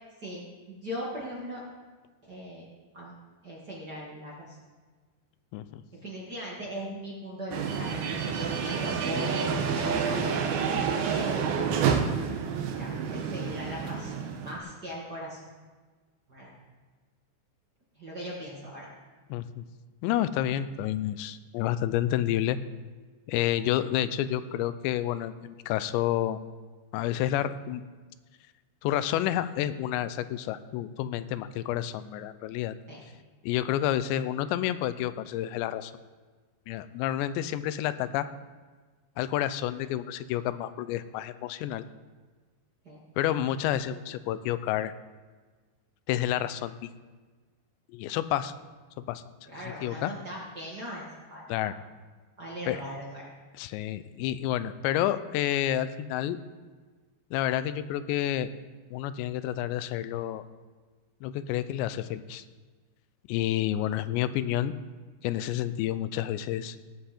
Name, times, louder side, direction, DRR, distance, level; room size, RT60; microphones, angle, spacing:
voice 1, 0.2-1.6 2.2-2.6 2.9-3.1 3.4-4.6 6.0-10.2 11.0-11.4 12.5-15.4 16.3-16.5 17.9-18.9 32.9-33.0 42.8-43.0 49.5-51.7 52.4-53.3, equal, 50° right, -5 dB, 1.1 m, -39 dB
sound 1, 7.5-14.6, right 6 dB, 70° right, 2.6 m, -29 dB
voice 2, 19.3-19.6 20.0-22.6 23.3-26.4 26.9-27.8 28.8-32.8 33.4-35.9 36.7-38.3 39.2-41.9 43.2-44.9 46.1-46.9 47.9-48.5 49.0-49.2 49.8-50.1 51.5-51.7 52.7-52.8 53.6-56.4 57.3-58.5 58.9-60.4 61.2-62.4 63.3-64.7 65.2-66.8, left 12 dB, 80° left, 13 dB, 2.7 m, -29 dB
19.0 x 7.6 x 4.4 m, 1.4 s
omnidirectional pair, 5.4 m